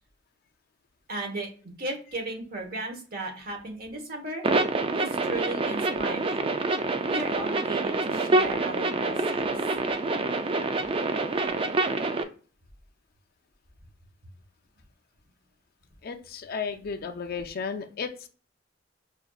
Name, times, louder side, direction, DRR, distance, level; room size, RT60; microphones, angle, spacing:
voice 1, 1.1-4.5 5.0-6.5 7.1-9.4, right 2 dB, 50° right, 2 dB, 1.2 m, -35 dB
sound 1, 4.4-12.2, right 3 dB, 30° right, 0.3 m, -26 dB
voice 2, 16.0-18.3, left 5 dB, 55° left, 6 dB, 0.4 m, -34 dB
5.6 x 2.5 x 2.3 m, 0.39 s
head